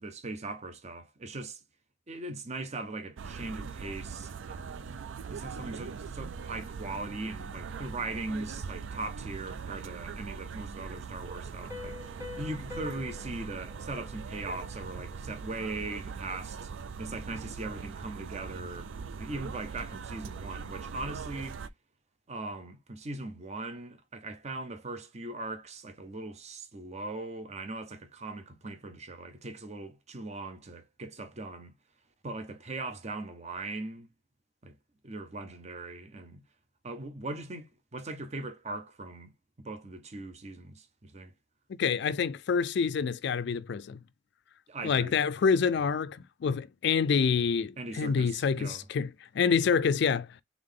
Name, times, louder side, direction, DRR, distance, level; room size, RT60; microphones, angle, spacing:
voice 1, 0.0-1.6 2.1-16.7 17.0-18.9 19.2-21.6 22.3-31.7 32.2-34.1 34.6-34.8 35.0-36.4 36.8-39.3 39.6-41.3 44.7-45.1 47.8-48.8, right 2 dB, 35° right, 0.7 m, -40 dB
sound 1, 3.2-21.7, right 5 dB, 85° right, 0.4 m, -41 dB
Piano, 11.7-15.1, left 4 dB, 15° right, 0.9 m, -46 dB
voice 2, 41.8-44.0 44.8-50.3, left 6 dB, 65° left, 0.4 m, -27 dB
3.6 x 3.5 x 3.7 m
head